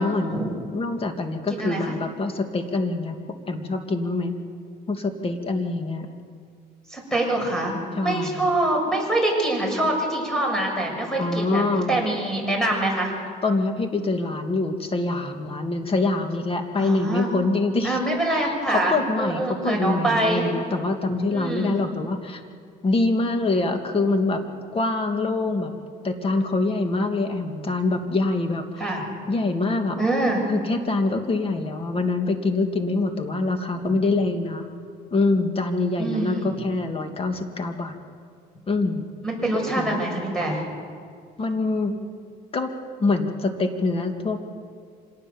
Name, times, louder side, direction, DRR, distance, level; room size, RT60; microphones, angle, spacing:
voice 1, 0.0-3.2 3.5-4.3 4.9-6.1 8.0-8.5 11.2-12.0 13.4-18.0 18.3-22.4 22.8-24.4 24.7-25.7 26.0-29.0 29.3-30.0 30.5-34.7 35.1-38.0 38.7-39.1 39.8-40.0 40.3-40.4 41.4-42.0 42.5-42.7 43.0-44.4, left 3 dB, 35° left, 5 dB, 2.3 m, -25 dB
voice 2, 1.5-1.9 6.9-11.6 11.9-13.1 16.8-17.3 17.8-20.5 21.3-21.8 28.8-29.1 30.0-30.4 33.8-34.0 36.0-36.6 39.2-40.6, right 1 dB, 5° left, 0 dB, 7.0 m, -25 dB
26.0 x 18.5 x 7.1 m, 2.1 s
cardioid pair, 110°, 17 cm